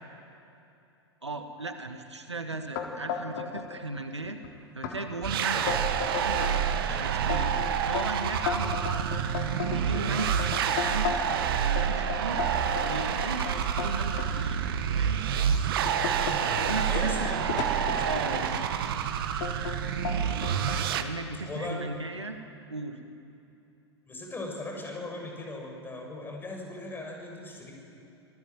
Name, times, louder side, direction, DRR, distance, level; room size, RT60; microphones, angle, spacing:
voice 1, 1.2-4.4 4.7-5.8 6.2-7.5 7.8-9.2 9.7-11.2 11.6-12.4 12.8-14.6 14.9-15.2 16.6-17.6 18.0-18.9 21.0-22.4 22.7-23.0, right 2 dB, 85° right, 7 dB, 2.0 m, -36 dB
sound 1, 2.7-3.7 3.9-4.5 4.8-5.0 5.4-6.6 7.0-11.4 11.8-14.3 14.9-15.1 15.5-18.6 19.4-19.8 20.0-20.8, left 7 dB, 50° left, 3.5 m, -34 dB
sound 2, 5.2-21.0, right 8 dB, 55° right, 1.6 m, -28 dB
voice 2, 16.2-17.4 21.4-21.8 24.1-27.7, left 2 dB, 15° left, 0 dB, 6.6 m, -39 dB
26.0 x 17.5 x 9.2 m, 2.7 s
figure-of-eight pair, 95°, 14 cm